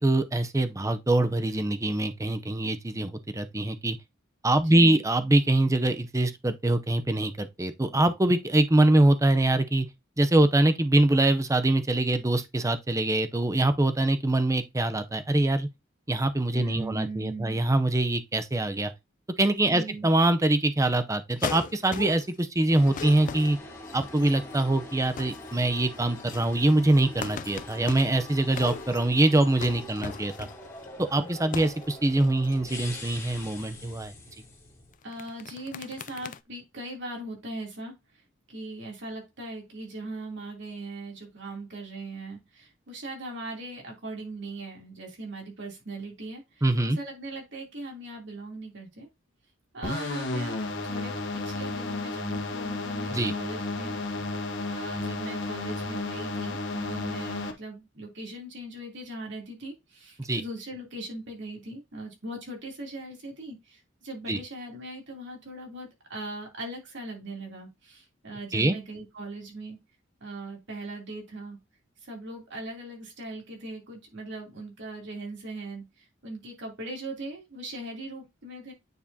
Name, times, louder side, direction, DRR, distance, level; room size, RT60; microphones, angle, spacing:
voice 1, 0.0-4.0 4.4-9.9 10.2-15.7 16.1-18.9 19.4-23.6 23.9-30.5 31.0-34.1 46.6-47.0 53.1-53.3 60.3-60.4 64.3-64.4 68.5-68.8, right 1 dB, 15° right, 0.6 m, -24 dB
voice 2, 4.6-5.0 16.5-17.6 19.7-20.1 35.0-37.9 38.5-49.1 49.7-50.6 50.8-51.2 51.4-54.0 54.4-69.8 70.2-71.6 72.0-78.7, right 2 dB, 65° right, 3.1 m, -39 dB
sound 1, 21.4-22.4 22.8-24.6 25.0-25.7 26.0-30.8 31.4-31.9 32.1-32.5 34.9-36.4, left 6 dB, 40° left, 0.3 m, -39 dB
sound 2, 22.7-34.9, left 2 dB, 15° left, 2.6 m, -44 dB
sound 3, 49.8-57.5, left 2 dB, 65° left, 1.5 m, -32 dB
9.3 x 4.8 x 2.8 m
head